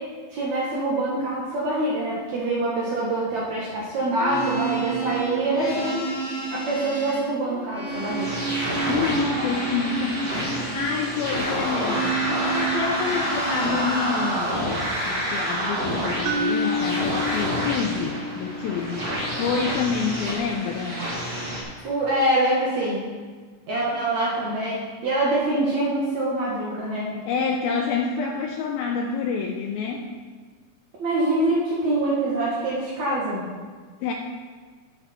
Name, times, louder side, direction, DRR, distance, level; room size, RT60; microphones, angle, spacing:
voice 1, 0.3-6.0 6.5-8.3 21.8-23.0 23.7-24.8 25.0-27.1 31.0-33.5, right 1 dB, 60° right, -6 dB, 2.0 m, -25 dB
sound 1, 4.0-14.3, right 3 dB, 45° left, 2.0 m, -30 dB
sound 2, 7.9-21.6, equal, 40° right, 1.3 m, -28 dB
voice 2, 8.9-14.6 15.0-19.1 19.4-21.0 23.9-24.1 27.1-30.1 34.0-34.1, left 5 dB, 90° left, 1 dB, 2.1 m, -28 dB
sound 3, 16.3-20.3, left 2 dB, 90° right, 2.1 m, -30 dB
10.0 x 6.8 x 4.2 m, 1.5 s
omnidirectional pair, 4.9 m